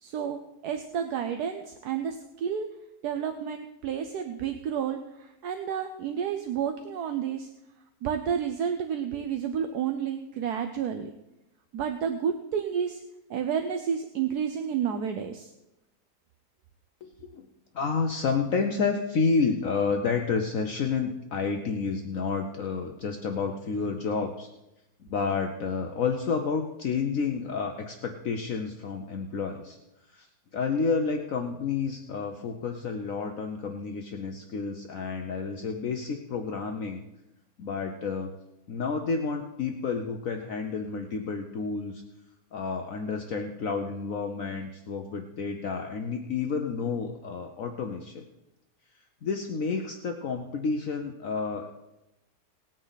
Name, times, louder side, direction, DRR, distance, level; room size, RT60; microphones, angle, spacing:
voice 1, 0.0-2.7 3.0-7.5 8.0-11.1 11.7-13.0 13.3-15.5, right 8 dB, 75° right, 6 dB, 1.3 m, -30 dB
voice 2, 17.0-17.4 17.7-24.5 25.0-29.8 30.1-30.3 30.5-37.0 37.6-38.3 38.7-42.0 42.5-48.3 49.2-51.7, left 5 dB, 60° left, 4 dB, 1.2 m, -30 dB
19.0 x 9.1 x 4.1 m, 0.91 s
omnidirectional pair, 1.8 m